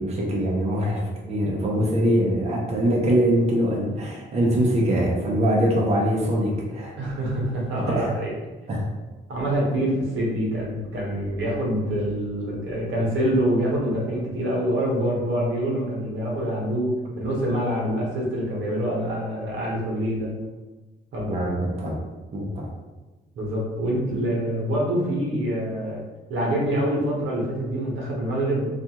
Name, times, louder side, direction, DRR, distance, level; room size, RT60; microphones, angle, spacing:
voice 1, 0.0-7.0 7.9-8.1 8.7-8.9 21.3-22.0 22.3-22.7, equal, 35° right, -3 dB, 0.6 m, -23 dB
voice 2, 7.0-8.3 9.3-20.3 21.1-21.3 23.3-26.0 26.3-28.7, right 1 dB, 75° right, -3 dB, 0.8 m, -25 dB
2.4 x 2.3 x 2.9 m, 1.2 s
cardioid pair, 90°, 20 cm